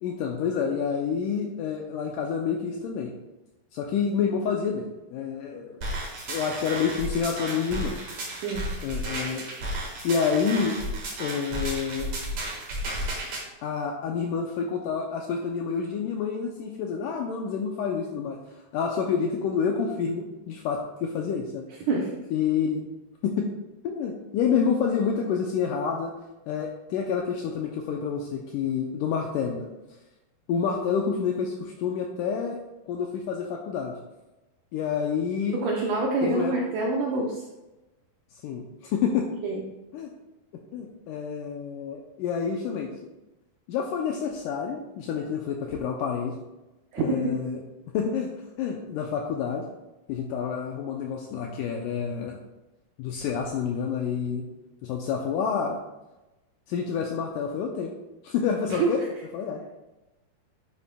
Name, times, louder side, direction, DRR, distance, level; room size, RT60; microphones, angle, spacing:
voice 1, 0.0-3.1 3.7-5.8 6.3-7.9 8.8-9.5 10.0-10.8 11.2-12.1 13.6-18.4 18.7-21.7 22.3-22.9 23.2-23.5 23.8-26.1 26.5-29.7 30.5-32.6 32.9-34.0 34.7-35.6 36.2-36.5 38.4-39.3 39.9-40.1 40.7-42.9 43.7-46.4 47.0-47.6 47.9-48.3 48.6-49.7 50.1-52.4 53.0-54.5 54.8-55.8 56.7-57.9 58.2-59.0 59.3-59.6, left 6 dB, 85° left, 2 dB, 1.8 m, -28 dB
sound 1, 5.8-13.4, right 1 dB, 55° right, 2.4 m, -33 dB
voice 2, 35.5-37.4 39.4-39.6 46.9-47.4 58.7-59.1, right 3 dB, 80° right, -1 dB, 1.8 m, -26 dB
9.6 x 8.1 x 2.3 m, 1.0 s
omnidirectional pair, 4.5 m